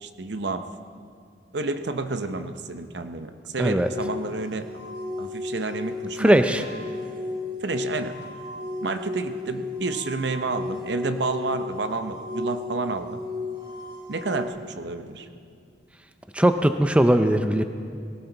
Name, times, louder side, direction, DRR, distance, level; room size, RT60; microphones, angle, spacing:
voice 1, 0.0-0.7 1.5-4.7 5.2-6.7 7.6-8.2 8.8-13.2 14.1-15.3, right 3 dB, 70° right, 8 dB, 0.8 m, -30 dB
sound 1, 3.8-14.5, left 3 dB, 25° right, 2.1 m, -34 dB
voice 2, 6.2-6.6 16.3-17.6, right 1 dB, 5° right, 8 dB, 0.4 m, -19 dB
19.0 x 17.0 x 4.0 m, 2.3 s
head